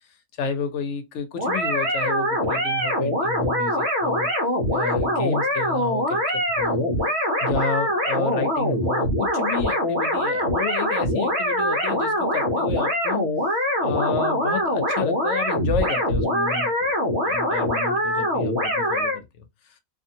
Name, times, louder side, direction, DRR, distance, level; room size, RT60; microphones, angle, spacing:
voice 1, 0.4-4.3 4.7-6.9 7.4-13.3 13.8-16.9 17.3-19.5, left 4 dB, 70° left, 0.9 m, -31 dB
sound 1, 1.4-19.2, equal, 60° right, 1.1 m, -23 dB
2.6 x 2.5 x 2.6 m
omnidirectional pair, 1.3 m